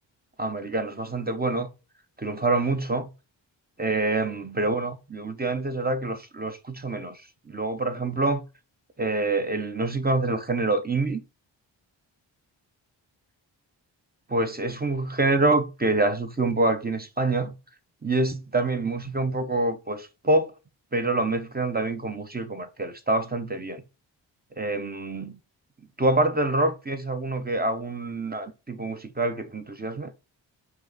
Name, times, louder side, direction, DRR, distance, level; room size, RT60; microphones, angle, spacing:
voice 1, 0.4-1.7 2.2-3.1 3.8-7.2 7.5-8.4 9.0-11.2 14.3-17.5 18.0-20.5 20.9-23.8 24.6-25.4 26.0-30.1, right 2 dB, 20° right, 0.9 m, -26 dB
4.5 x 2.7 x 4.1 m
supercardioid pair, 40°, 48 cm